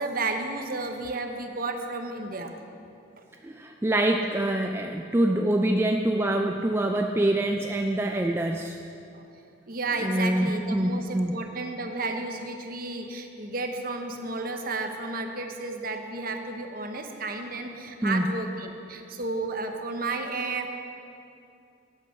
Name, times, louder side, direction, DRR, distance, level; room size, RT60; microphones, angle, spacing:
voice 1, 0.0-2.5 9.1-9.2 9.7-20.7, right 3 dB, 45° right, 5 dB, 0.9 m, -32 dB
voice 2, 3.4-8.8 10.0-11.3 18.0-18.2, right 1 dB, 10° right, 2 dB, 0.3 m, -25 dB
11.5 x 9.0 x 5.9 m, 2.6 s
head